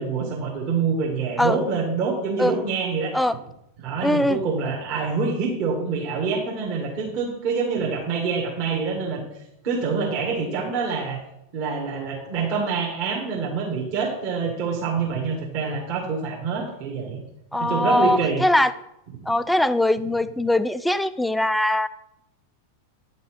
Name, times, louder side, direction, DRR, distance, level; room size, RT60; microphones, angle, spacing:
voice 1, 0.0-3.1 3.8-9.3 9.6-11.2 11.5-17.2 17.6-18.4 19.2-19.3, right 5 dB, 45° right, -2 dB, 2.0 m, -26 dB
voice 2, 4.0-4.4 17.5-18.7 19.3-21.9, left 1 dB, 5° left, 13 dB, 0.4 m, -21 dB
9.9 x 5.4 x 4.8 m, 0.83 s
figure-of-eight pair, 90°, 0 cm